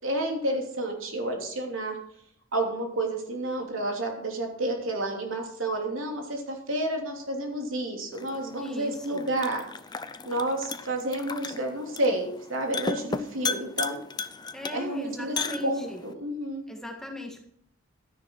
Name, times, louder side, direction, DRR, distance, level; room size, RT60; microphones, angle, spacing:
voice 1, 0.0-2.0 2.5-9.6 10.2-14.0 14.7-15.4 15.6-16.6, right 1 dB, 75° right, 2 dB, 3.1 m, -30 dB
sound 1, 8.1-16.1, left 4 dB, 20° left, 0.6 m, -36 dB
voice 2, 8.6-9.3 14.5-16.0 16.7-17.4, equal, 5° left, 2 dB, 1.8 m, -38 dB
12.5 x 10.5 x 4.7 m, 0.68 s
head